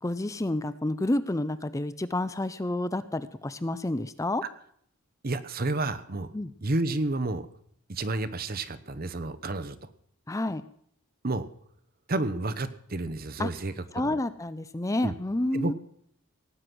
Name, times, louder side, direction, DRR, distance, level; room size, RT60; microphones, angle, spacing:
voice 1, 0.0-4.4 6.3-6.5 10.3-10.6 13.4-13.5 13.9-15.7, left 1 dB, 15° left, 14 dB, 0.5 m, -29 dB
voice 2, 5.2-6.3 6.6-7.5 7.9-9.8 11.2-11.5 12.1-14.1 15.0-15.1 15.5-15.7, right 2 dB, 45° right, 13 dB, 0.9 m, -30 dB
17.5 x 9.6 x 6.2 m, 0.66 s
head